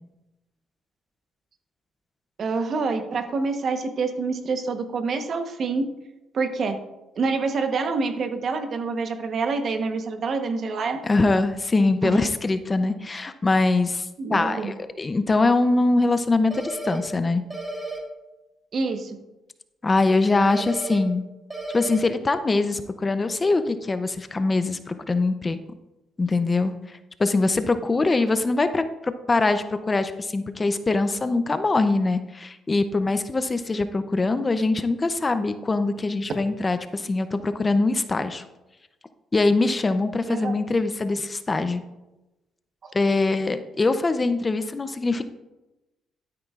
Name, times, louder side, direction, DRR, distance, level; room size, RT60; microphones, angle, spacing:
voice 1, 2.4-5.8 6.3-6.8 7.2-11.0 12.0-12.2 14.2-14.7 18.7-19.2 40.3-40.5 42.8-42.9, right 4 dB, 55° right, 7 dB, 1.0 m, -26 dB
voice 2, 11.0-17.4 19.8-21.2 21.7-25.6 26.2-38.4 39.3-41.8 42.9-45.2, left 3 dB, 25° left, 10 dB, 0.6 m, -23 dB
sound 1, 16.5-17.0 17.5-18.0 20.5-21.0 21.5-22.0, right 2 dB, 20° right, 1.9 m, -33 dB
12.0 x 9.6 x 2.4 m, 1.0 s
cardioid pair, 90°, 0 cm